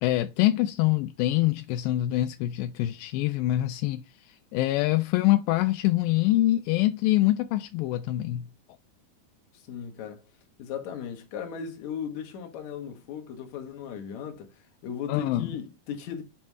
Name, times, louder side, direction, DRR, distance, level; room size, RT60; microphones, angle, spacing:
voice 1, 0.0-4.0 4.5-8.5 15.1-15.5, left 16 dB, 85° left, 2.0 m, -25 dB
voice 2, 9.5-10.2 10.6-14.5 14.8-16.2, left 7 dB, 60° left, 2.1 m, -37 dB
7.2 x 3.2 x 5.4 m
omnidirectional pair, 4.6 m